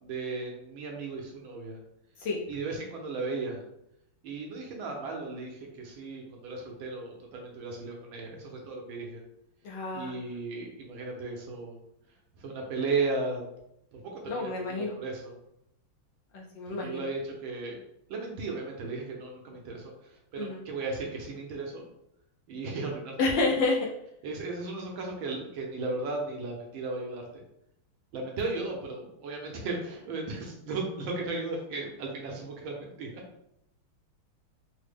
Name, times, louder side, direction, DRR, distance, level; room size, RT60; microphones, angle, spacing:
voice 1, 0.0-1.8 2.5-3.6 4.2-9.2 9.9-11.8 12.4-13.4 13.9-15.2 16.8-17.8 18.1-21.8 22.5-23.5 24.2-27.4 28.1-33.2, right 3 dB, 75° right, 0 dB, 1.4 m, -35 dB
voice 2, 9.6-10.1 14.3-14.9 16.3-17.0 20.4-20.6 23.2-23.8 28.5-28.6, left 3 dB, 75° left, -1 dB, 1.1 m, -29 dB
3.8 x 2.1 x 3.3 m, 0.78 s
omnidirectional pair, 2.3 m